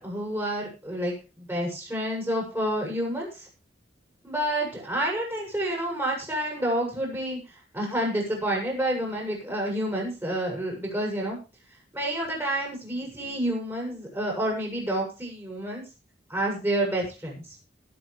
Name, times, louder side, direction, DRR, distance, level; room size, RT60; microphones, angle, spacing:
voice 1, 0.0-3.5 4.2-7.4 7.7-11.4 11.9-15.8 16.3-17.4, right 1 dB, 15° right, -2 dB, 7.9 m, -29 dB
20.0 x 9.0 x 3.6 m, 0.32 s
head